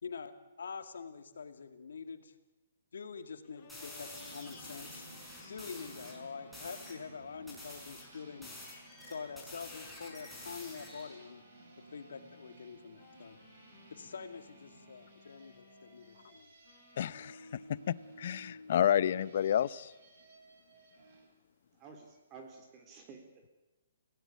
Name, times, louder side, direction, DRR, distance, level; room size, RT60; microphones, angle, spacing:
voice 1, 0.0-2.3 2.9-5.1 5.5-8.5 9.0-11.4 11.9-13.4 13.9-16.5, left 5 dB, 80° left, 9 dB, 2.3 m, -45 dB
sound 1, 3.4-7.4 7.8-12.7 13.0-16.3 16.6-17.6, left 5 dB, 35° left, 6.1 m, -61 dB
sound 2, 3.7-6.2 6.5-7.0 7.5-11.2, left 2 dB, ahead, 5.2 m, -49 dB
sound 3, 4.1-21.3, right 2 dB, 55° right, 6.1 m, -57 dB
voice 2, 17.0-17.4 17.7-17.8 18.2-19.9, left 9 dB, 55° left, 19 dB, 0.7 m, -29 dB
voice 3, 21.7-23.5, right 4 dB, 25° right, 4 dB, 3.6 m, -52 dB
22.5 x 17.0 x 8.4 m, 1.0 s
hypercardioid pair, 155°, 0 cm